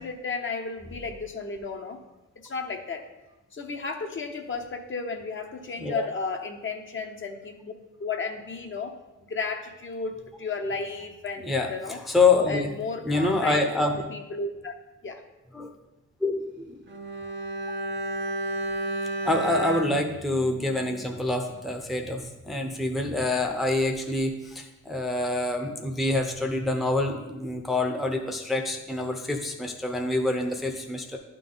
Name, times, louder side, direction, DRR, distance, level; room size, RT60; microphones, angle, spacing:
voice 1, 0.0-2.0 2.4-3.1 3.5-7.7 8.0-9.0 9.3-12.0 12.5-13.6 14.1-14.7 15.0-15.2, left 4 dB, 40° left, 4 dB, 0.8 m, -33 dB
voice 2, 11.4-12.7 13.0-14.0 15.5-15.7 16.2-16.8 19.2-31.2, left 2 dB, ahead, 3 dB, 0.7 m, -26 dB
Bowed string instrument, 16.9-21.3 21.6-21.7, right 2 dB, 40° right, 0.8 m, -33 dB
11.0 x 3.8 x 3.8 m, 1.0 s
cardioid pair, 90°, 30 cm